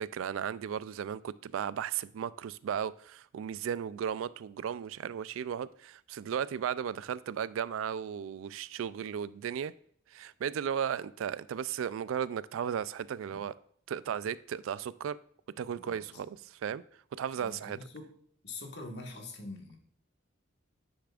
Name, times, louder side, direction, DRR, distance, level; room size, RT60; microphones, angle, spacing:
voice 1, 0.0-9.7 10.1-13.5 13.9-15.2 15.6-16.8 17.1-17.8, right 8 dB, 90° right, 18 dB, 0.3 m, -35 dB
voice 2, 15.7-16.3 17.3-18.1 18.4-19.8, left 2 dB, 60° left, 2 dB, 1.6 m, -44 dB
9.6 x 6.7 x 2.4 m, 0.63 s
head